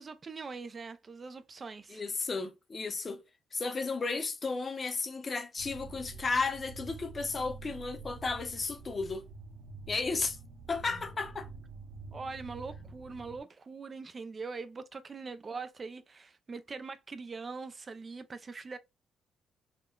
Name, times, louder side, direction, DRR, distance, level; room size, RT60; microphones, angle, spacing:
voice 1, 0.0-2.0 12.1-18.8, right 4 dB, 35° right, 0.3 m, -42 dB
voice 2, 1.9-3.2 3.5-9.2 9.9-10.4 10.7-11.5, left 4 dB, 35° left, 0.7 m, -33 dB
sound 1, 5.6-13.4, right 3 dB, 80° right, 0.7 m, -47 dB
3.6 x 2.2 x 2.2 m
cardioid pair, 90°, 0 cm